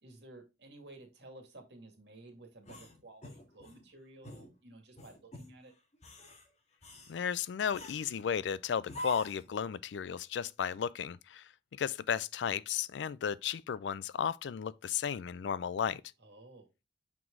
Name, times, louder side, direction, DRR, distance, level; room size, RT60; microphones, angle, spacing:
voice 1, 0.0-5.7 16.2-16.7, right 2 dB, 70° right, 2.2 m, -54 dB
sound 1, 2.6-3.8 4.2-4.5 5.0-5.5 5.9-6.4 6.8-7.2 7.7-8.2 8.9-9.5, left 1 dB, 40° left, 1.7 m, -45 dB
voice 2, 7.1-16.0, left 7 dB, 85° left, 0.4 m, -34 dB
6.0 x 4.6 x 3.7 m
head